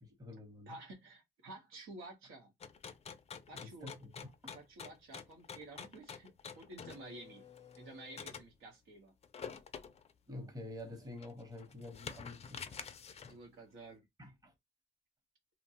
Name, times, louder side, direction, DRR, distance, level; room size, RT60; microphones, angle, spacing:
voice 1, 0.0-0.8 3.5-4.5 10.3-12.6 14.2-14.5, left 2 dB, 20° right, 0.9 m, -48 dB
voice 2, 0.7-2.5 3.5-4.0 4.5-6.3 6.6-7.5 7.8-9.1 13.3-14.0, right 2 dB, 85° right, 1.0 m, -51 dB
sound 1, 2.6-8.5 9.2-10.1 10.6-10.7 11.2-13.4, left 6 dB, 30° left, 0.4 m, -48 dB
2.7 x 2.2 x 2.7 m
cardioid pair, 90°, 20 cm